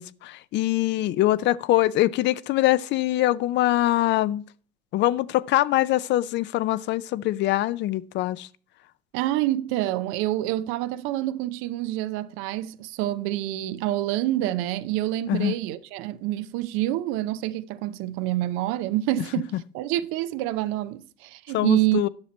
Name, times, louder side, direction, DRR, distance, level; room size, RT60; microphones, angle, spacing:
voice 1, 0.0-4.4 4.9-8.5 15.3-15.6 21.5-22.1, left 15 dB, 60° left, 0.4 m, -23 dB
voice 2, 9.1-19.5 19.7-22.0, right 15 dB, 85° right, 0.5 m, -27 dB
9.7 x 5.9 x 4.3 m
cardioid pair, 100°, 21 cm